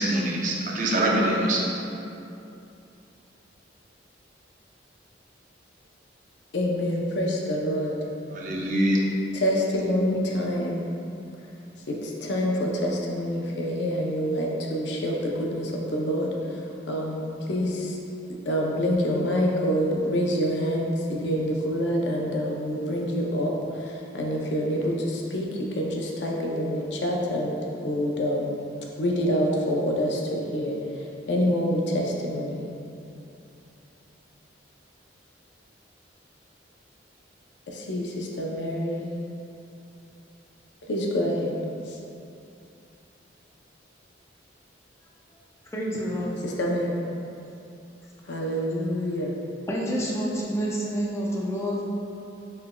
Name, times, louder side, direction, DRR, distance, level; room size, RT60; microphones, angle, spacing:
voice 1, 0.0-1.6 8.4-9.0, right 1 dB, 45° right, -3 dB, 0.5 m, -24 dB
voice 2, 6.5-8.0 9.3-10.9 11.9-18.0 18.3-28.5 29.0-32.6 37.7-39.1 40.9-41.6 41.9-42.0 46.4-47.0 48.3-49.3, equal, 65° left, -1 dB, 0.6 m, -27 dB
voice 3, 45.7-46.4 49.7-51.8, equal, 15° left, -4 dB, 0.5 m, -28 dB
5.8 x 3.3 x 2.2 m, 2.8 s
head